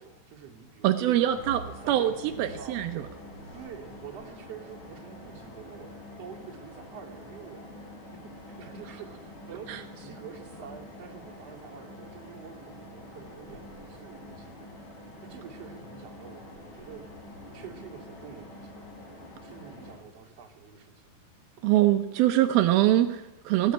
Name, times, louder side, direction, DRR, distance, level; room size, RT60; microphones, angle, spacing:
voice 1, 0.0-2.8 3.5-5.9 6.2-7.7 8.1-8.2 8.5-14.9 15.2-17.0 17.5-18.7 19.4-21.0, right 7 dB, 40° right, -1 dB, 3.2 m, -47 dB
voice 2, 0.8-3.0 9.7-9.8 21.6-23.7, right 13 dB, 85° right, 7 dB, 2.1 m, -24 dB
sound 1, 1.2-20.0, left 1 dB, 30° left, 3.8 m, -46 dB
18.5 x 18.5 x 8.9 m, 0.99 s
omnidirectional pair, 5.5 m